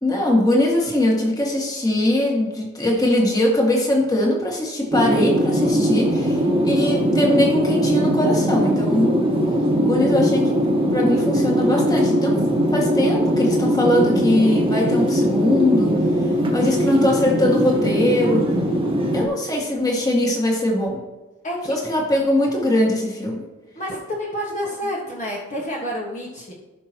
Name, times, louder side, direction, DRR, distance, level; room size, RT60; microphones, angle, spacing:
voice 1, 0.0-9.2 9.8-10.6 10.9-12.4 12.7-16.0 16.5-18.5 19.1-21.1 21.7-23.4, left 1 dB, 20° left, -1 dB, 2.0 m, -21 dB
sound 1, 4.9-19.3, equal, 25° right, 1.5 m, -20 dB
voice 2, 21.4-21.7 23.7-26.5, equal, 35° left, -4 dB, 1.6 m, -29 dB
16.0 x 6.0 x 3.0 m, 1.1 s
head